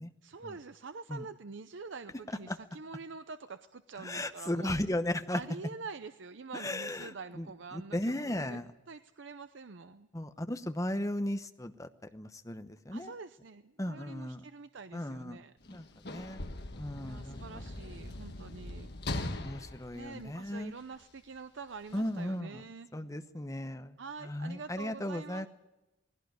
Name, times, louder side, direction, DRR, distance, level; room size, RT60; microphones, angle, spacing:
voice 1, 0.2-4.8 5.3-8.6 8.9-10.1 12.9-15.5 17.0-19.4 19.9-22.9 24.0-25.5, right 4 dB, 70° right, 11 dB, 0.7 m, -46 dB
voice 2, 4.0-5.4 6.5-7.5 7.7-8.7 10.1-13.1 13.8-14.4 14.9-15.4 15.7-16.4 16.8-17.4 19.2-20.7 21.9-22.6 22.9-25.5, left 1 dB, 15° left, 9 dB, 0.9 m, -36 dB
Sliding door / Slam, 15.6-21.0 21.9-22.0, left 2 dB, 60° left, 1.6 m, -41 dB
20.0 x 16.5 x 9.4 m, 1.0 s
head